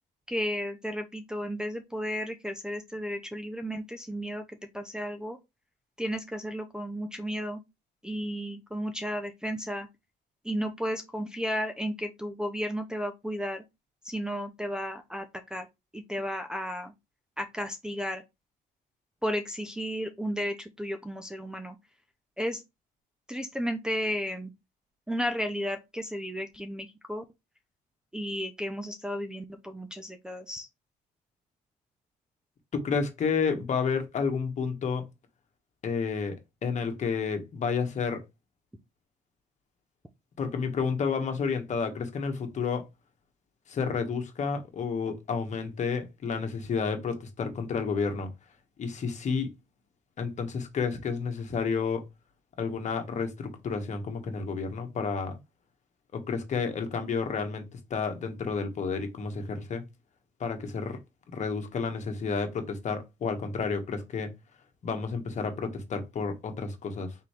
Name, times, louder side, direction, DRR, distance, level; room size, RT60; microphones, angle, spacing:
voice 1, 0.3-4.4 4.7-5.4 6.0-7.6 8.0-9.9 10.4-13.6 14.0-15.3 15.5-15.7 15.9-16.9 17.4-18.2 19.2-21.8 22.4-22.6 23.3-24.5 25.1-27.2 28.1-30.7, equal, 5° right, 0.6 m, -33 dB
voice 2, 32.7-35.0 35.8-36.4 36.6-38.2 40.4-42.9 43.7-48.3 48.8-49.5 50.2-52.1 52.6-55.4 56.1-57.6 57.9-59.8 60.4-61.0 61.3-64.3 64.8-67.1, left 5 dB, 45° left, 1.3 m, -30 dB
3.8 x 3.1 x 4.4 m
cardioid pair, 110°, 17 cm